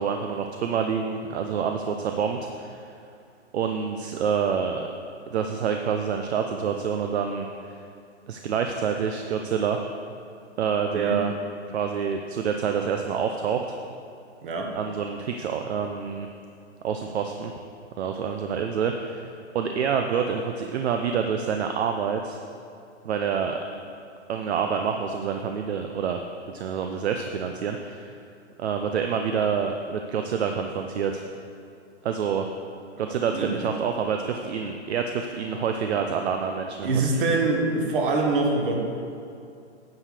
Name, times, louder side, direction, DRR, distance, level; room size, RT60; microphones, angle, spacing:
voice 1, 0.0-2.9 3.5-4.9 5.3-7.7 8.3-9.8 10.6-11.3 11.7-13.6 14.7-16.3 16.8-17.5 18.0-22.4 23.0-23.6 24.3-26.2 26.5-28.2 28.6-31.2 32.0-32.5 33.0-37.0, right 6 dB, 65° right, 5 dB, 0.7 m, -27 dB
voice 2, 33.0-33.7 36.8-38.8, right 3 dB, 45° right, 1 dB, 1.5 m, -25 dB
9.3 x 4.9 x 6.6 m, 2.5 s
hypercardioid pair, 155°, 35 cm